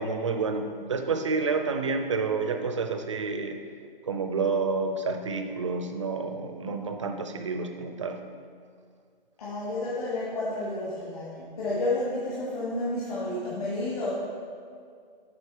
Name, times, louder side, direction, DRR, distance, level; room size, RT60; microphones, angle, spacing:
voice 1, 0.0-3.6 4.0-8.2, right 4 dB, 30° right, 6 dB, 0.5 m, -29 dB
voice 2, 9.4-14.1, left 2 dB, 40° left, -7 dB, 1.5 m, -31 dB
8.3 x 5.2 x 4.6 m, 2.2 s
figure-of-eight pair, 150°, 29 cm